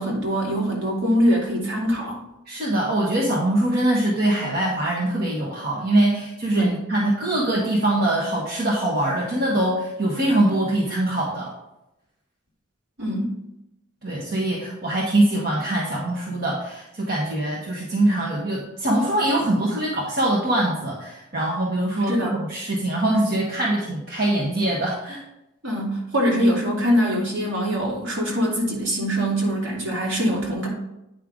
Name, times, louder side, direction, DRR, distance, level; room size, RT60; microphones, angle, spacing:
voice 1, 0.0-2.2 6.5-6.8 13.0-13.4 22.1-22.4 25.6-30.7, equal, 65° right, -2 dB, 2.5 m, -23 dB
voice 2, 2.5-11.5 14.0-25.2, right 1 dB, 45° right, -4 dB, 1.3 m, -23 dB
9.2 x 5.6 x 3.7 m, 0.89 s
head